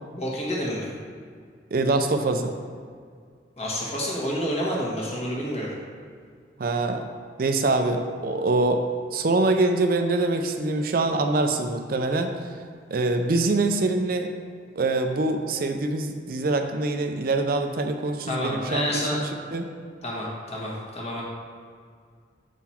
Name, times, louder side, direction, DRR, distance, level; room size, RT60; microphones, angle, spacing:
voice 1, 0.1-0.9 3.6-5.7 18.3-19.2 20.0-21.2, equal, 35° left, -4 dB, 1.3 m, -29 dB
voice 2, 1.7-2.5 6.6-7.0 7.4-8.8 9.1-12.5 12.9-14.3 14.8-19.2 19.5-19.6, right 2 dB, 50° right, 6 dB, 0.5 m, -24 dB
7.1 x 3.9 x 4.3 m, 2.1 s
head